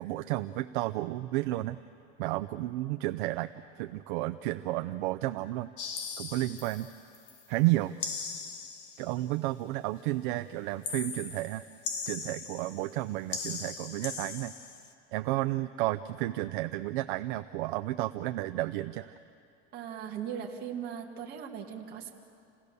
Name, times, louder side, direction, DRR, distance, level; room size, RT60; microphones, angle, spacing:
voice 1, 0.0-1.8 2.2-5.7 6.2-6.9 7.5-7.9 9.0-11.6 12.1-14.5 15.1-19.1, right 17 dB, 55° right, 9 dB, 0.5 m, -32 dB
sound 1, 5.8-7.4 8.0-9.2 10.8-13.0 13.3-14.9, left 5 dB, 35° left, 1.4 m, -39 dB
voice 2, 19.7-22.1, right 8 dB, 30° right, 1 dB, 2.0 m, -39 dB
28.5 x 17.0 x 6.8 m, 2.5 s
supercardioid pair, 175°, 31 cm